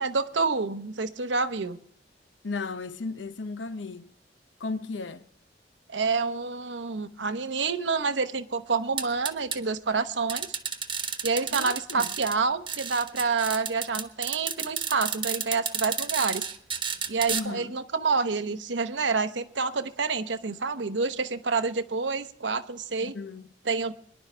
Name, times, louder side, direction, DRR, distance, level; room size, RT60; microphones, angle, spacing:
voice 1, 0.0-1.8 5.9-10.5 11.2-16.5 17.1-23.1 23.6-23.9, right 4 dB, 80° right, 0.9 m, -28 dB
voice 2, 2.4-4.1 4.6-5.3 11.5-12.1 17.3-17.8 23.0-23.5, left 3 dB, 85° left, 0.7 m, -35 dB
sound 1, 9.0-9.6 10.3-12.4 12.7-17.4, right 6 dB, 30° right, 1.1 m, -31 dB
23.5 x 11.0 x 3.3 m
head